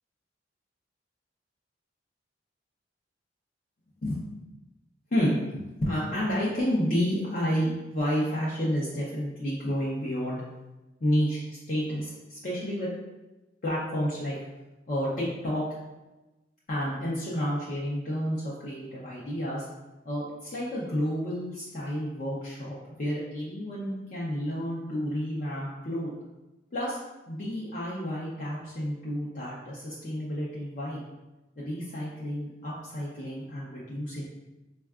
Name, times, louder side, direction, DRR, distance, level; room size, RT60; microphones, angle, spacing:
voice 1, 5.1-10.4 11.0-12.9 13.6-14.4 14.9-15.6 16.7-19.6 20.0-26.1 26.7-27.0 27.3-31.0 31.6-34.2, equal, 45° left, -7 dB, 0.6 m, -30 dB
4.4 x 2.2 x 2.3 m, 1.1 s
head